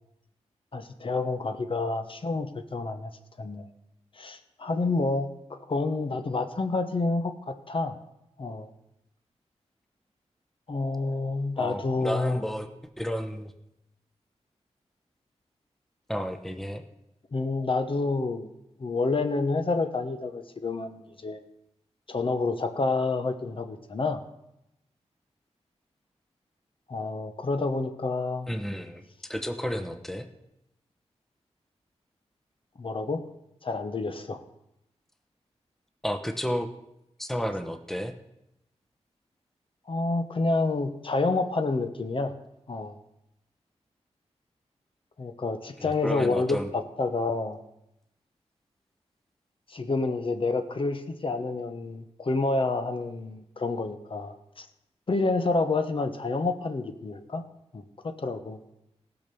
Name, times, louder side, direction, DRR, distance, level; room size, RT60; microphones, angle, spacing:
voice 1, 0.7-3.1 3.4-3.7 4.1-7.9 8.4-8.7 10.7-12.5 17.3-18.5 18.8-21.4 22.1-24.2 26.9-28.5 32.8-33.2 33.6-34.4 39.9-42.3 42.7-42.9 45.2-47.6 49.7-54.7 55.1-57.4 57.7-58.6, left 3 dB, 50° left, 8 dB, 1.0 m, -29 dB
voice 2, 11.6-12.7 13.0-13.5 16.1-16.8 28.5-30.3 36.0-36.7 37.2-38.1 45.8-46.7, equal, 5° left, 8 dB, 0.9 m, -32 dB
16.0 x 6.1 x 6.9 m, 0.86 s
wide cardioid pair, 85°, 12 cm